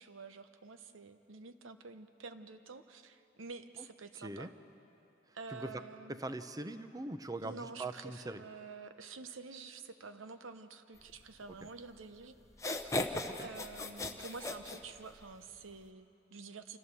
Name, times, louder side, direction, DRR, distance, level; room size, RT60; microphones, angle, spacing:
voice 1, 0.0-4.5 5.3-6.2 7.4-12.3 13.4-16.8, right 4 dB, 75° right, 9 dB, 0.9 m, -49 dB
voice 2, 4.1-4.5 5.3-5.8 6.1-8.4 13.3-13.5, right 2 dB, 20° right, 10 dB, 0.7 m, -42 dB
sound 1, 12.0-12.1 12.5-15.4, left 2 dB, 15° left, 0.9 m, -37 dB
27.5 x 14.0 x 6.9 m, 2.9 s
head